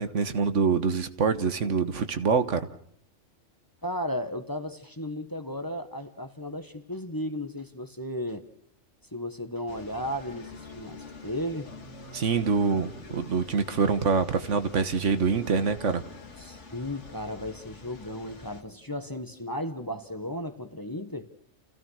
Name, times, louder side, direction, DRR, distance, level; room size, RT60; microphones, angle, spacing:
voice 1, 0.0-2.7 12.1-16.0, right 5 dB, 70° right, 1.6 m, -25 dB
voice 2, 3.8-8.4 9.1-11.7 16.4-21.3, left 1 dB, 15° left, 1.3 m, -35 dB
sound 1, 9.7-18.6, left 4 dB, 70° left, 2.4 m, -46 dB
29.0 x 16.0 x 6.4 m
omnidirectional pair, 1.3 m